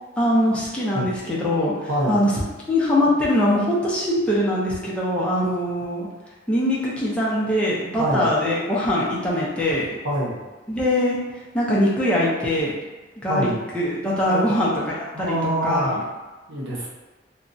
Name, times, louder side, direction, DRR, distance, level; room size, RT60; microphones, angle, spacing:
voice 1, 0.2-1.7 2.1-2.3 2.7-6.1 6.5-9.9 10.7-11.2 11.5-12.7 13.2-13.5 13.7-16.0, left 1 dB, 5° left, -7 dB, 0.5 m, -22 dB
voice 2, 1.9-2.2 8.0-8.3 10.0-10.4 13.3-13.6 14.2-14.5 15.1-15.9 16.5-16.9, right 1 dB, 80° right, -5 dB, 0.8 m, -25 dB
2.8 x 2.2 x 2.6 m, 1.2 s
head